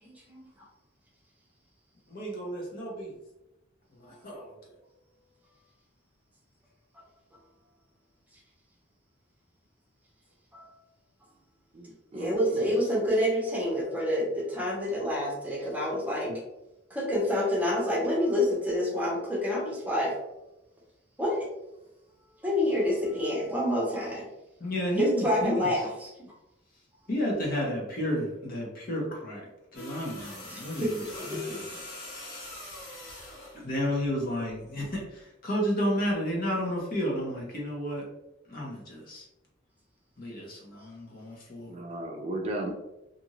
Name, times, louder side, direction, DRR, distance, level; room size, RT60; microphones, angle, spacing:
voice 1, 0.0-0.5 10.5-10.7 12.1-16.3 16.9-20.1 21.2-21.5 22.4-24.2 25.0-26.1 30.5-31.6 40.7-40.8, left 1 dB, 10° right, -4 dB, 0.8 m, -28 dB
voice 2, 2.1-3.1 4.0-4.5 24.6-25.7 27.1-29.4 29.7-31.0 31.3-31.7 32.2-32.3 33.6-38.0 38.5-39.3 40.2-41.8, equal, 50° left, -2 dB, 0.9 m, -32 dB
voice 3, 11.7-12.7 41.7-42.7, right 1 dB, 35° right, 2 dB, 0.3 m, -36 dB
sound 1, 29.7-33.6 34.8-35.0, left 1 dB, 85° left, 1.3 m, -42 dB
2.6 x 2.5 x 2.9 m, 0.92 s
head